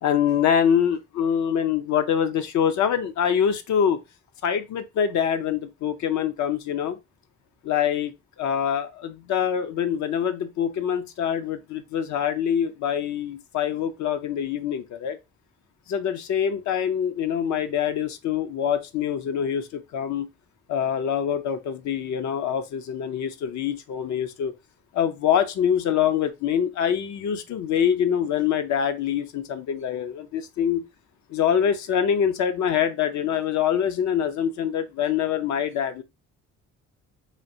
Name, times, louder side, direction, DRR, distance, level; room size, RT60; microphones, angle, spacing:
voice 1, 0.0-4.0 4.4-7.0 7.6-8.1 8.4-15.2 15.9-20.3 20.7-24.5 24.9-30.8 31.3-36.0, left 8 dB, 70° left, 0.5 m, -25 dB
3.2 x 2.3 x 2.6 m
cardioid pair, 90°, 30 cm